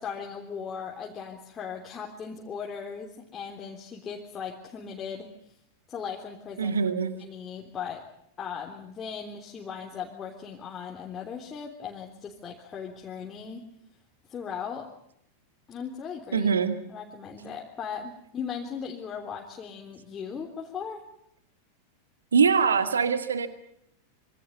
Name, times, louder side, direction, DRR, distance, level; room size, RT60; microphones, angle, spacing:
voice 1, 0.0-5.3 5.9-6.8 7.2-8.1 8.4-13.7 14.3-14.9 15.7-16.5 16.9-21.0, left 6 dB, 25° left, 0 dB, 3.6 m, -38 dB
voice 2, 6.6-7.1 16.3-16.8 22.3-23.5, right 6 dB, 70° right, 10 dB, 2.2 m, -23 dB
27.0 x 25.5 x 5.5 m, 0.73 s
figure-of-eight pair, 90°, 0 cm